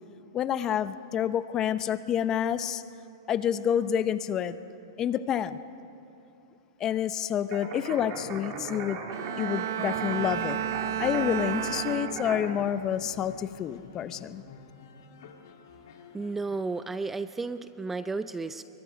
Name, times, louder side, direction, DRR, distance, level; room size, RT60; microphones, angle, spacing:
voice 1, 0.3-2.8 3.3-4.6 5.0-5.6 6.8-9.0 9.4-10.6 11.0-14.4, left 9 dB, 25° left, 13 dB, 0.8 m, -28 dB
sound 1, 7.5-12.5, right 4 dB, 40° right, 3.7 m, -38 dB
Bowed string instrument, 9.1-12.7 13.1-13.5, right 11 dB, 70° right, 0.7 m, -33 dB
sound 2, 10.1-16.9, left 6 dB, 65° left, 2.2 m, -50 dB
voice 2, 16.1-18.6, right 3 dB, 10° right, 12 dB, 0.5 m, -33 dB
29.0 x 23.0 x 5.2 m, 2.7 s
hypercardioid pair, 135°, 2 cm